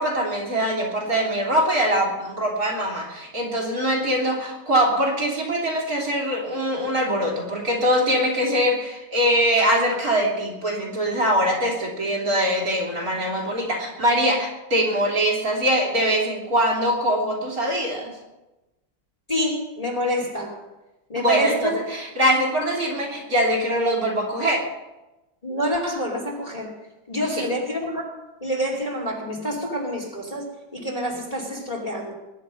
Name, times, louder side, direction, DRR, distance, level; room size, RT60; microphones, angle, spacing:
voice 1, 0.0-18.1 21.2-24.6 27.4-27.5, equal, 45° right, -1 dB, 3.7 m, -23 dB
voice 2, 19.3-20.6 21.1-21.8 25.4-26.7 27.1-28.1 28.4-30.5 30.7-32.1, equal, 20° left, 0 dB, 2.6 m, -27 dB
21.5 x 10.5 x 5.1 m, 1.0 s
omnidirectional pair, 2.2 m